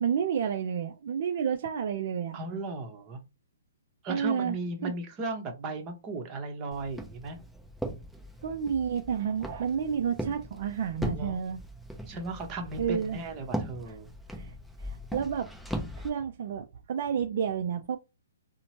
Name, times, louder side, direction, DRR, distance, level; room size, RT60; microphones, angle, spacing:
voice 1, 0.0-2.4 4.1-4.6 4.8-4.9 8.4-11.6 12.8-13.2 14.3-14.5 14.8-15.5 16.0-18.0, right 7 dB, 55° right, 0.4 m, -30 dB
voice 2, 2.3-3.2 4.0-7.4 11.2-11.5 12.1-14.1, right 2 dB, 25° right, 0.9 m, -36 dB
Walk footsteps, 6.7-16.1, equal, ahead, 0.6 m, -39 dB
2.8 x 2.1 x 2.8 m
hypercardioid pair, 135°, 0 cm